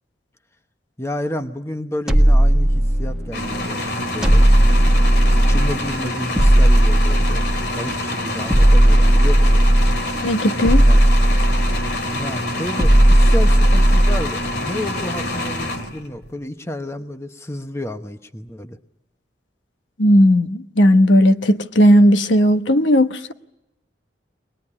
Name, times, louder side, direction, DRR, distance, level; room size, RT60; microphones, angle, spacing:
voice 1, 1.0-4.5 5.5-9.6 10.9-11.0 12.1-18.8, left 1 dB, 15° left, 1.0 m, -31 dB
sound 1, 2.1-3.4 4.2-5.9 6.4-7.8 8.5-10.1 10.6-12.0 12.8-14.4, right 1 dB, 5° right, 1.5 m, -14 dB
sound 2, 3.3-16.3, left 1 dB, 60° left, 2.5 m, -26 dB
voice 2, 10.2-10.8 20.0-23.3, equal, 85° left, 1.1 m, -15 dB
22.5 x 20.0 x 9.9 m
head